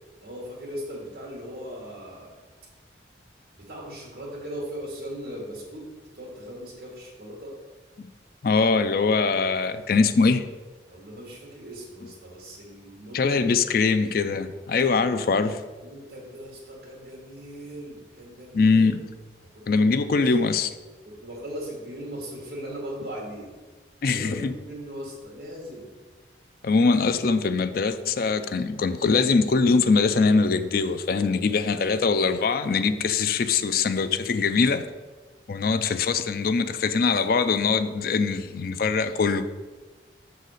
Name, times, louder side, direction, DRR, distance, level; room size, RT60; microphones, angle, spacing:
voice 1, 0.2-2.3 3.5-5.9 6.1-7.5 10.9-13.4 15.8-18.9 19.4-20.3 21.0-23.5 24.0-26.0, equal, 55° right, -4 dB, 1.9 m, -39 dB
voice 2, 8.4-10.4 13.1-15.6 18.5-19.0 19.7-20.7 24.0-24.5 26.6-34.8 35.5-39.4, left 4 dB, 50° left, 11 dB, 0.4 m, -22 dB
6.4 x 4.1 x 6.4 m, 1.3 s
head